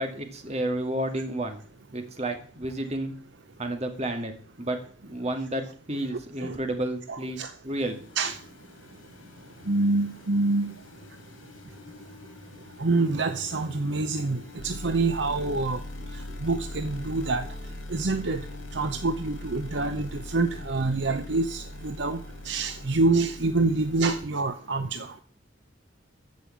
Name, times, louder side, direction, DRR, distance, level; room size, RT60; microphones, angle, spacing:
voice 1, 0.0-1.6 1.9-3.1 3.6-4.3 4.6-4.8 5.0-8.0, right 1 dB, 35° right, 5 dB, 2.1 m, -31 dB
voice 2, 7.1-7.5 8.2-8.4 9.7-10.7 12.8-15.8 16.4-17.4 17.9-18.4 18.7-22.2 22.5-25.1, right 3 dB, 60° right, 9 dB, 0.8 m, -26 dB
sound 1, 7.8-24.3, left 2 dB, 80° left, 3.2 m, -42 dB
14.0 x 5.5 x 8.7 m, 0.43 s
head